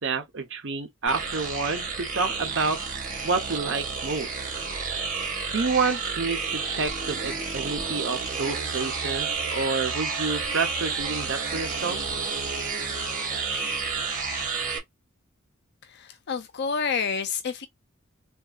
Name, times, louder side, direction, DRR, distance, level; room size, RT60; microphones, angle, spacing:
voice 1, 0.0-2.8 3.2-4.4 5.5-12.0, right 4 dB, 65° right, 0.9 m, -29 dB
sound 1, 1.1-14.8, right 5 dB, 40° right, 1.3 m, -30 dB
voice 2, 15.9-17.7, left 6 dB, 55° left, 0.5 m, -29 dB
3.6 x 2.6 x 2.4 m
head